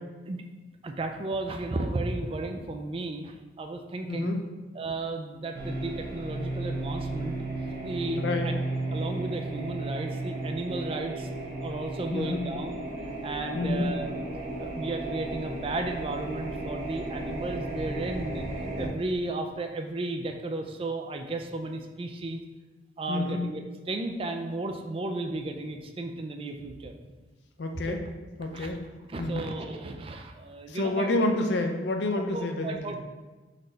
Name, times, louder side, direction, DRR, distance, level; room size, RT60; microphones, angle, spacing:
voice 1, 0.8-4.4 4.7-7.4 7.8-8.6 8.9-11.3 11.6-12.7 13.2-14.1 14.6-22.4 23.0-26.9 27.7-28.0 28.5-28.7 29.1-31.1 32.3-33.0, right 2 dB, 30° right, 5 dB, 0.3 m, -34 dB
voice 2, 4.1-4.4 8.2-8.5 12.1-12.5 13.5-13.9 23.1-23.4 27.6-28.0 28.4-28.9 29.2-29.4 30.7-32.9, left 2 dB, 75° left, 4 dB, 0.5 m, -28 dB
sound 1, 5.5-18.9, right 2 dB, 55° right, 1.1 m, -34 dB
4.1 x 3.9 x 3.2 m, 1.2 s
head